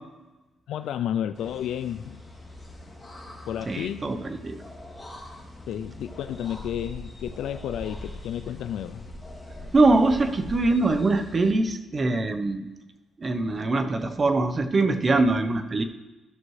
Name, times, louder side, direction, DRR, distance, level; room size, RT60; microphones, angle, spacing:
voice 1, 0.7-2.2 3.5-4.1 5.7-9.0, left 10 dB, 80° left, 10 dB, 0.3 m, -31 dB
sound 1, 1.3-11.5, left 1 dB, 5° left, 2.6 m, -42 dB
voice 2, 3.7-4.6 9.7-12.7 13.2-15.8, right 2 dB, 35° right, 8 dB, 0.8 m, -23 dB
14.0 x 6.0 x 3.2 m, 1.1 s
cardioid pair, 90°, 0 cm